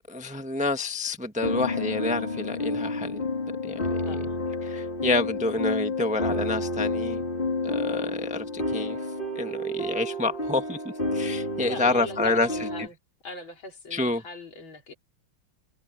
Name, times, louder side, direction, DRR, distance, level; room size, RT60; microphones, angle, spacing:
voice 1, 0.1-3.3 3.6-3.9 4.6-7.2 7.6-9.0 9.3-10.8 11.1-12.7 13.9-14.2, left 2 dB, 5° right, 1.1 m, -28 dB
sound 1, 1.4-12.9, left 2 dB, 25° left, 2.7 m, -30 dB
voice 2, 4.1-4.4 11.6-13.0 13.2-14.9, left 3 dB, 70° left, 4.2 m, -41 dB
omnidirectional pair, 2.2 m